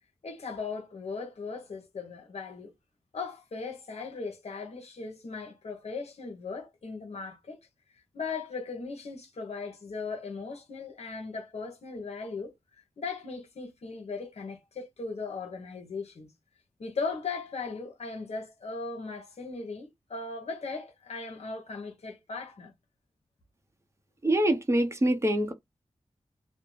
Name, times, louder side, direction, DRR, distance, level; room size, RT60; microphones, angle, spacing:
voice 1, 0.2-2.7 3.1-7.6 8.0-16.3 16.8-22.7, left 4 dB, 75° left, 0.8 m, -38 dB
voice 2, 24.2-25.5, right 1 dB, 25° right, 0.7 m, -25 dB
2.5 x 2.1 x 3.1 m
wide cardioid pair, 70°, 11 cm